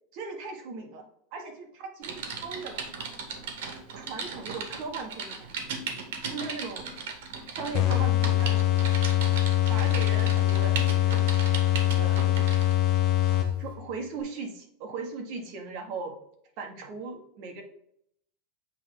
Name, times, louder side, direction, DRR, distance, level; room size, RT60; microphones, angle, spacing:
voice 1, 0.1-2.8 3.9-5.7 6.3-6.9 7.5-8.9 9.7-11.2 11.9-12.4 13.6-16.2 16.6-17.6, right 4 dB, 50° right, 3 dB, 1.5 m, -38 dB
Typing, 2.0-12.7 13.3-13.5, right 5 dB, 80° right, 1.5 m, -37 dB
sound 1, 7.7-13.8, left 13 dB, 40° left, 0.9 m, -23 dB
7.5 x 3.4 x 3.8 m, 0.71 s
supercardioid pair, 160°, 0 cm